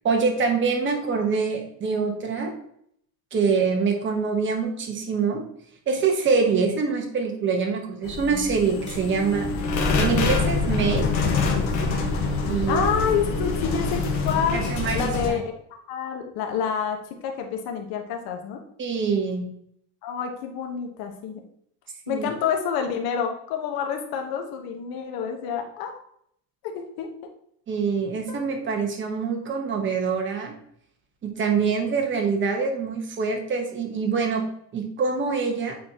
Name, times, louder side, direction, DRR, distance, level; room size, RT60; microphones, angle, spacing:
voice 1, 0.0-2.5 3.3-5.4 5.9-9.5 10.0-11.1 12.5-13.0 14.5-15.4 18.8-19.4 22.1-22.3 27.7-30.5 31.2-34.4 34.7-35.7, right 5 dB, 30° right, 2 dB, 1.2 m, -25 dB
sound 1, 8.0-15.3, left 3 dB, 45° left, 1.4 m, -25 dB
voice 2, 12.5-14.6 14.9-15.4 15.9-17.0 17.2-18.6 20.0-21.4 22.1-26.0 26.7-27.1, left 7 dB, 65° left, 3 dB, 1.3 m, -28 dB
8.7 x 4.2 x 2.9 m, 0.68 s
cardioid pair, 150°, 39 cm